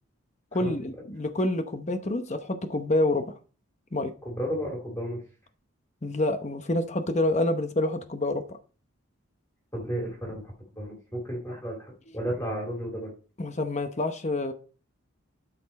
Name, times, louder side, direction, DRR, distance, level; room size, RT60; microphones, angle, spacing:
voice 1, 0.5-3.3 3.9-4.1 6.0-8.6 13.4-14.5, left 1 dB, 35° left, 8 dB, 0.8 m, -27 dB
voice 2, 4.2-5.2 9.7-13.1, equal, 15° left, -2 dB, 2.2 m, -33 dB
12.0 x 4.3 x 4.2 m, 0.38 s
head